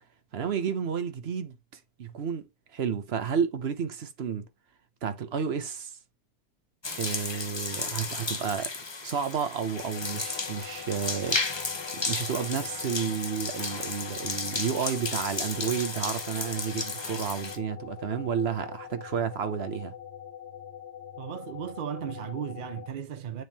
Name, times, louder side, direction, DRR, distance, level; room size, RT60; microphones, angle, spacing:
voice 1, 0.3-1.6 2.0-2.4 2.7-4.5 5.0-5.9 7.0-8.7 9.0-11.4 11.9-19.9, right 7 dB, 50° right, 0.8 m, -31 dB
sound 1, 6.8-17.6, left 3 dB, 35° left, 0.4 m, -34 dB
sound 2, 9.7-22.9, left 9 dB, 50° left, 0.8 m, -44 dB
voice 2, 21.2-23.4, right 8 dB, 65° right, 0.5 m, -36 dB
9.3 x 3.6 x 2.8 m
omnidirectional pair, 1.8 m